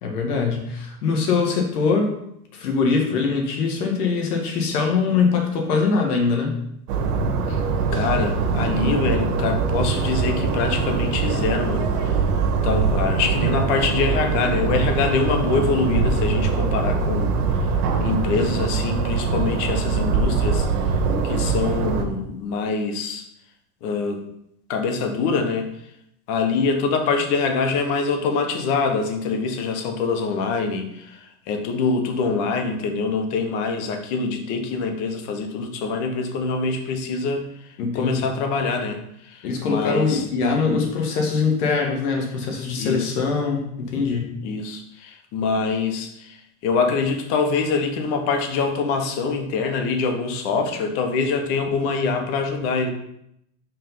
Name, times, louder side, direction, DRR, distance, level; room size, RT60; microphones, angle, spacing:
voice 1, 0.0-2.1 2.5-6.6 37.8-38.2 39.4-44.3, left 4 dB, 80° left, 2 dB, 1.8 m, -22 dB
sound 1, 6.9-22.0, right 5 dB, 90° right, 1.1 m, -22 dB
voice 2, 7.9-12.3 12.6-17.7 18.0-20.7 21.2-23.3 23.8-24.2 24.7-25.7 26.3-40.2 42.8-43.1 44.4-52.9, left 4 dB, 50° left, 5 dB, 1.2 m, -24 dB
5.5 x 3.6 x 5.5 m, 0.76 s
supercardioid pair, 145°, 45 cm